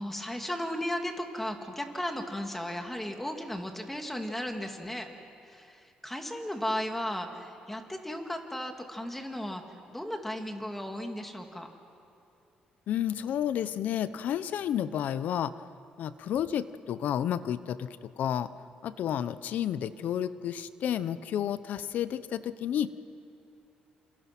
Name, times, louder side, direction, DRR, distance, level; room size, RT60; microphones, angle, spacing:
voice 1, 0.0-5.1 5.4-9.6 9.9-11.7, left 1 dB, 5° left, 4 dB, 2.5 m, -35 dB
voice 2, 12.9-15.5 16.0-18.5 18.8-22.9, left 10 dB, 70° left, 14 dB, 0.9 m, -31 dB
28.0 x 27.5 x 6.1 m, 2.8 s
cardioid pair, 110°, 3 cm